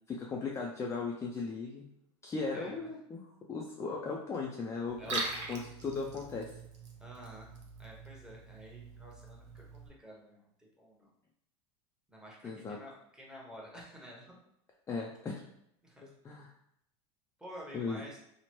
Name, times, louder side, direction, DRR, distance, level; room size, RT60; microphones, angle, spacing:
voice 1, 0.1-1.9 2.2-5.2 5.5-6.5 12.4-12.8 14.9-15.4 16.2-16.5 17.7-18.0, left 4 dB, 20° left, -1 dB, 0.3 m, -37 dB
voice 2, 2.5-2.9 5.0-5.2 7.0-10.5 10.8-11.1 12.1-14.4 15.8-16.1 17.4-18.2, equal, 5° right, -3 dB, 0.9 m, -50 dB
Liquid, 4.9-9.9, right 3 dB, 85° right, 0.7 m, -42 dB
2.9 x 2.1 x 3.0 m, 0.75 s
supercardioid pair, 105°, 15 cm